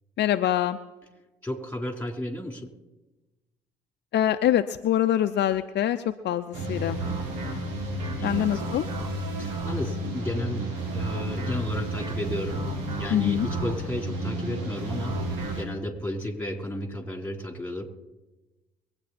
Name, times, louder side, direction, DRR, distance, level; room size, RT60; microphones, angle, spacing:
voice 1, 0.2-0.8 4.1-6.0 6.2-7.0 8.2-8.9 13.1-13.5, left 11 dB, 55° left, 9 dB, 0.7 m, -24 dB
voice 2, 1.4-2.6 8.2-8.5 9.4-12.6 13.0-15.1 15.6-17.8, left 1 dB, 10° left, 2 dB, 3.8 m, -33 dB
sound 1, 6.5-15.6, right 1 dB, 85° right, 2.4 m, -31 dB
23.0 x 8.8 x 4.3 m, 1.1 s
hypercardioid pair, 55°, 21 cm